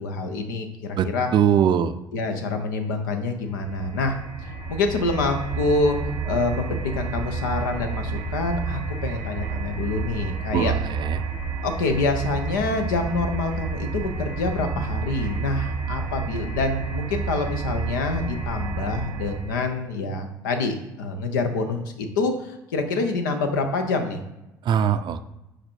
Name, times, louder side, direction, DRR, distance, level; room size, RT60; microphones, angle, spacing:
voice 1, 0.0-1.3 2.1-4.2 4.7-6.0 6.2-10.7 11.6-24.2, left 3 dB, 80° left, 5 dB, 0.7 m, -26 dB
voice 2, 1.0-1.9 10.5-11.2 24.7-25.2, right 8 dB, 50° right, 11 dB, 0.4 m, -21 dB
sound 1, 3.5-19.7, right 4 dB, 75° right, 0.8 m, -30 dB
5.0 x 4.4 x 4.5 m, 0.93 s
hypercardioid pair, 55°, 10 cm